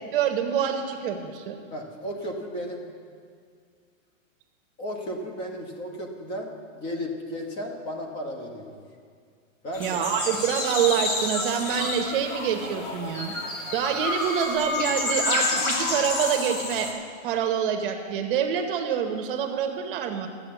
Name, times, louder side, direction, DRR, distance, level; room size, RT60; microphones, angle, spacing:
voice 1, 0.1-1.6 9.8-13.3 13.7-16.9 17.2-20.3, right 8 dB, 40° right, 5 dB, 1.0 m, -26 dB
voice 2, 1.7-2.9 4.8-8.7 9.6-10.0, equal, 25° left, 2 dB, 1.4 m, -34 dB
sound 1, 9.7-16.9, left 2 dB, 90° left, 2.3 m, -29 dB
13.0 x 7.8 x 7.0 m, 2.2 s
hypercardioid pair, 155°, 40 cm